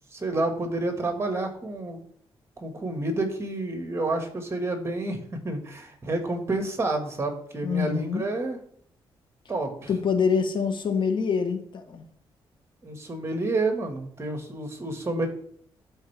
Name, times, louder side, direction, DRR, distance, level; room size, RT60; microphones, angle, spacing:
voice 1, 0.1-2.0 2.6-8.6 9.5-9.9 12.8-15.3, right 2 dB, 30° right, 5 dB, 1.7 m, -29 dB
voice 2, 7.6-8.2 9.9-12.0, left 6 dB, 55° left, 7 dB, 1.1 m, -25 dB
12.0 x 4.5 x 3.4 m, 0.65 s
cardioid pair, 90°, 9 cm